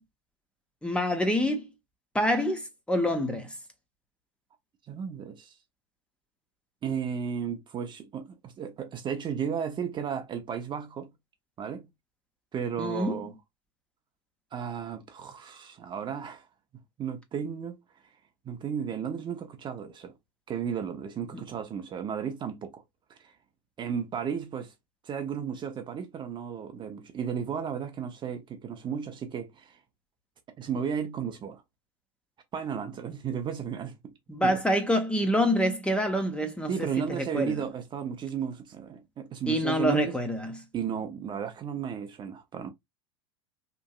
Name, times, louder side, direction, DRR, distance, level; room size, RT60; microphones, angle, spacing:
voice 1, 0.8-1.7 2.1-3.5 12.8-13.2 34.3-37.5 39.5-40.6, equal, 5° left, 0.7 m, -26 dB
voice 2, 4.9-5.5 6.8-11.1 11.6-11.9 12.5-13.3 14.5-16.5 17.0-17.8 18.4-20.1 20.5-22.8 23.2-23.3 23.8-24.7 25.0-29.8 30.6-31.6 32.5-34.1 34.4-34.6 36.7-40.2 40.7-42.7, right 7 dB, 30° right, 0.6 m, -34 dB
3.0 x 2.5 x 2.3 m
hypercardioid pair, 90°, 16 cm